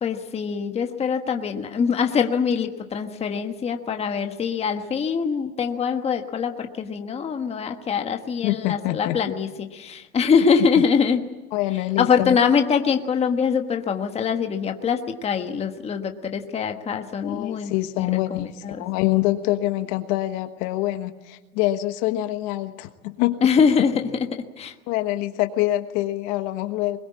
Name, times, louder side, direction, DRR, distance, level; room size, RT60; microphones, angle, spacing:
voice 1, 0.0-11.2 12.0-17.7 18.0-18.8 23.4-24.7, left 6 dB, 15° left, 5 dB, 1.3 m, -23 dB
voice 2, 8.4-9.2 11.5-12.4 17.2-23.4 24.9-27.0, left 16 dB, 40° left, 10 dB, 1.3 m, -25 dB
22.0 x 21.0 x 8.5 m, 1.2 s
hypercardioid pair, 135°, 44 cm